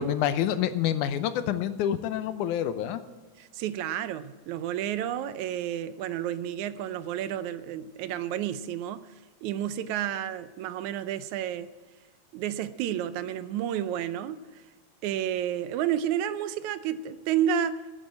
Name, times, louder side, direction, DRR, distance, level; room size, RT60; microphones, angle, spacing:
voice 1, 0.0-3.0, left 10 dB, 85° left, 12 dB, 2.2 m, -27 dB
voice 2, 3.4-9.0 9.4-11.7 12.3-14.4 15.0-17.8, right 10 dB, 80° right, 13 dB, 2.0 m, -30 dB
10.5 x 10.0 x 8.3 m, 1.3 s
omnidirectional pair, 3.5 m